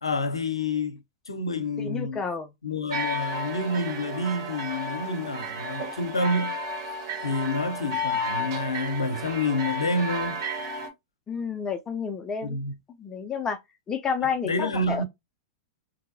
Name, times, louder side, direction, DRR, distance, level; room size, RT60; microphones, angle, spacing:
voice 1, 0.0-2.2 2.6-6.6 7.2-10.4 12.4-12.7 14.2-15.0, left 2 dB, 90° left, 0.6 m, -28 dB
voice 2, 1.8-2.5 11.3-12.6 13.0-13.6 13.9-15.0, left 6 dB, 20° left, 0.5 m, -30 dB
sound 1, 2.9-10.9, equal, 60° right, 1.6 m, -32 dB
3.9 x 2.7 x 2.7 m
hypercardioid pair, 100°, 3 cm